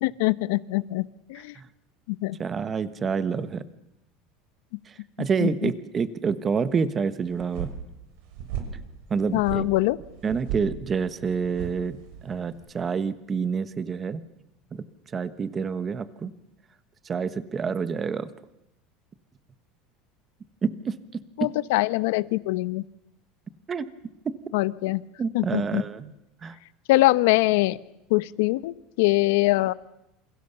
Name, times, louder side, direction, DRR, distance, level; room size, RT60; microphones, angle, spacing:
voice 1, 0.0-1.5 2.1-2.4 5.4-5.7 9.3-10.0 21.4-22.8 24.5-25.0 25.3-25.8 26.9-27.8 28.1-29.7, left 19 dB, 75° left, 16 dB, 1.0 m, -23 dB
voice 2, 2.4-3.6 5.2-7.7 9.1-9.6 10.2-12.0 12.2-14.2 14.7-14.8 15.1-16.3 17.1-18.3 20.6-20.9 23.7-23.9 25.2-26.1 26.4-26.5, right 6 dB, 20° right, 13 dB, 1.2 m, -27 dB
sound 1, 7.3-12.7, right 8 dB, 65° right, 6.5 m, -37 dB
28.0 x 28.0 x 7.0 m, 0.87 s
cardioid pair, 175°, 0 cm